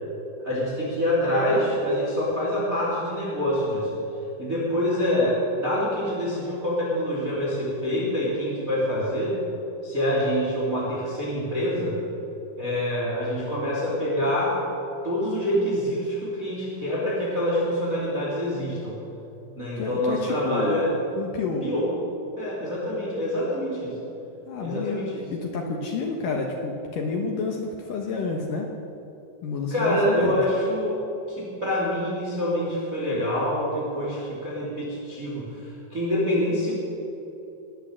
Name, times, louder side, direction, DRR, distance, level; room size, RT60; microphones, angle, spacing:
voice 1, 0.4-3.9 4.4-9.4 9.8-12.0 12.6-14.6 15.0-19.0 19.6-20.9 21.6-21.9 22.4-23.9 24.6-25.2 29.7-31.0 31.3-36.7, equal, 20° right, -5 dB, 2.7 m, -26 dB
voice 2, 19.8-20.9 21.1-21.7 24.5-28.7 29.4-30.4, left 4 dB, 80° left, 1 dB, 1.9 m, -29 dB
20.5 x 8.6 x 7.5 m, 2.9 s
omnidirectional pair, 5.7 m